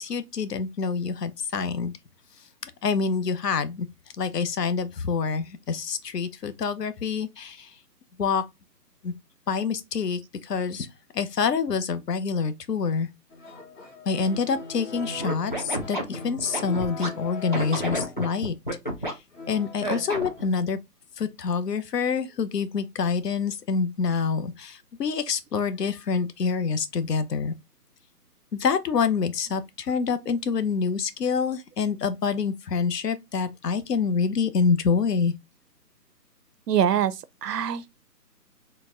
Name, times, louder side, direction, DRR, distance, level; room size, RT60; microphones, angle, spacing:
voice 1, 0.0-1.9 2.8-3.9 4.2-7.7 8.2-8.4 9.0-9.1 9.5-10.9 11.1-13.1 14.1-18.5 19.5-20.8 21.2-27.5 28.5-35.3, left 5 dB, 75° left, 0.8 m, -26 dB
sound 1, 13.3-18.3 19.3-20.4, left 3 dB, 50° left, 1.3 m, -40 dB
Scratching (performance technique), 15.2-17.1 17.5-19.1 19.8-20.4, right 1 dB, 30° left, 0.5 m, -29 dB
voice 2, 36.7-37.9, right 9 dB, 75° right, 0.6 m, -24 dB
3.9 x 2.2 x 3.6 m
hypercardioid pair, 165°, 49 cm